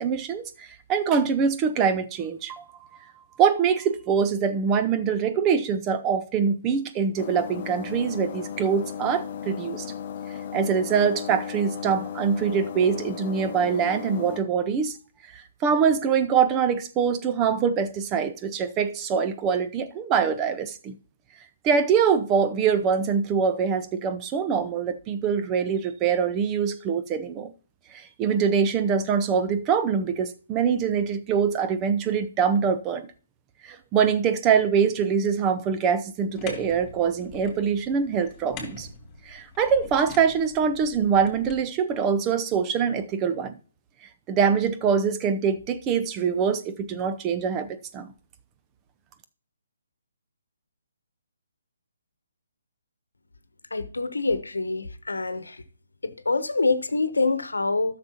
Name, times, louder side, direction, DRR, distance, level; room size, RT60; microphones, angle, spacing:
voice 1, 0.0-2.6 3.4-9.8 10.5-15.0 15.6-21.0 21.6-27.5 27.9-33.1 33.6-38.9 39.3-43.5 44.3-48.1, right 6 dB, 20° right, 0.6 m, -24 dB
sound 1, 7.2-14.4, left 8 dB, 45° left, 0.6 m, -35 dB
sound 2, 36.3-41.6, left 3 dB, 15° left, 3.3 m, -43 dB
voice 2, 53.7-55.6 56.0-58.0, left 3 dB, 80° left, 1.0 m, -26 dB
13.5 x 6.7 x 2.9 m
figure-of-eight pair, 140°, 0 cm